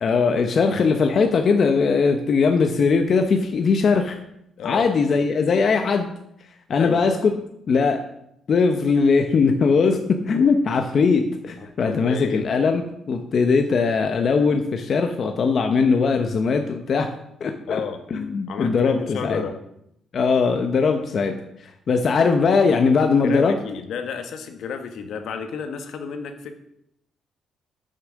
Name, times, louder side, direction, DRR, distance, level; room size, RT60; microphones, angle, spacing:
voice 1, 0.0-4.2 4.6-6.1 6.7-7.3 7.7-8.0 8.5-12.8 13.1-17.1 17.4-17.8 18.1-19.4 20.1-21.4 21.9-23.5, left 5 dB, 45° left, 5 dB, 0.9 m, -20 dB
voice 2, 4.6-4.9 6.7-7.1 11.6-12.4 17.7-18.0 18.5-19.6 23.2-26.5, left 6 dB, 70° left, 6 dB, 1.4 m, -32 dB
9.6 x 6.7 x 6.4 m, 0.78 s
cardioid pair, 135°, 0 cm